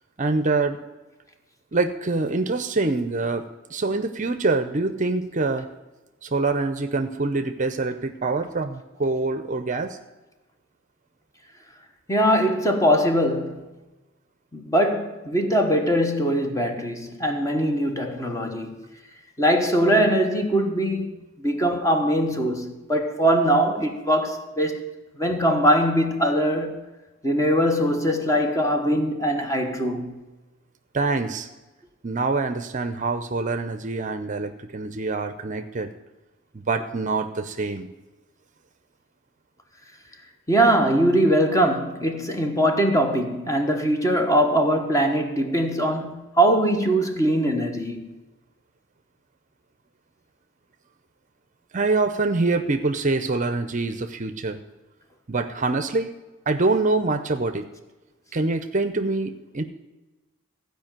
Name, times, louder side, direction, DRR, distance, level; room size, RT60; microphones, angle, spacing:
voice 1, 0.2-0.8 1.7-3.4 3.7-5.7 6.2-10.0 30.9-31.5 32.0-35.9 36.5-37.9 51.7-54.6 55.3-56.1 56.5-57.7 58.3-59.6, right 3 dB, 40° right, 0.6 m, -25 dB
voice 2, 12.1-13.7 14.5-18.8 19.4-24.9 25.2-26.8 27.2-30.2 40.5-48.1, right 1 dB, 15° left, 1.2 m, -22 dB
15.0 x 5.2 x 9.0 m
head